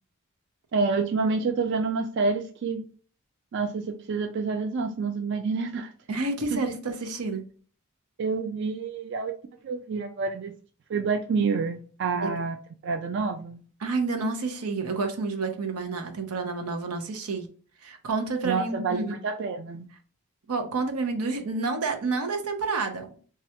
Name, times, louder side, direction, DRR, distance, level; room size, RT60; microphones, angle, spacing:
voice 1, 0.7-2.9 3.5-5.9 6.5-6.6 8.2-9.4 9.6-10.5 10.9-12.6 12.8-13.6 18.4-19.9, right 4 dB, 50° right, 0.3 m, -28 dB
voice 2, 6.1-7.4 12.2-12.3 13.8-17.5 17.8-19.2 20.5-23.2, right 3 dB, 90° right, 0.7 m, -29 dB
3.2 x 2.4 x 2.8 m
head